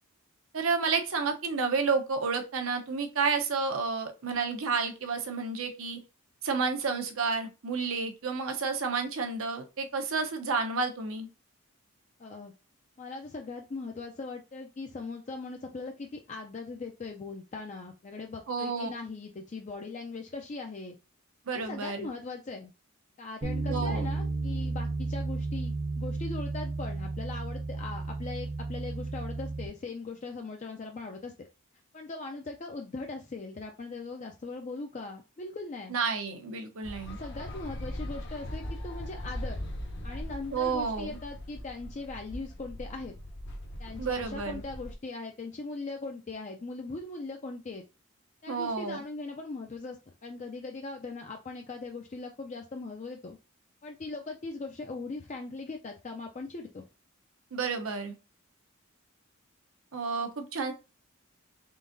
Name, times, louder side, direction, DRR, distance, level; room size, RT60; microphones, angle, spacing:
voice 1, 0.5-6.0 6.4-11.3 18.5-18.9 21.5-22.1 23.7-24.1 35.9-37.2 40.5-41.2 44.0-44.6 48.5-49.0 57.5-58.1 59.9-60.7, right 4 dB, 70° right, 5 dB, 0.7 m, -30 dB
voice 2, 12.2-12.5 13.0-21.0 21.5-22.7 23.2-31.3 31.9-35.9 37.2-39.6 40.0-43.2 43.8-47.8 48.4-53.4 53.8-56.8, left 3 dB, 35° left, 3 dB, 0.4 m, -40 dB
Bass guitar, 23.4-29.7, right 3 dB, 35° right, 0.5 m, -33 dB
sound 1, 36.8-44.9, left 1 dB, 50° left, 0.8 m, -40 dB
3.8 x 3.5 x 2.6 m, 0.30 s
head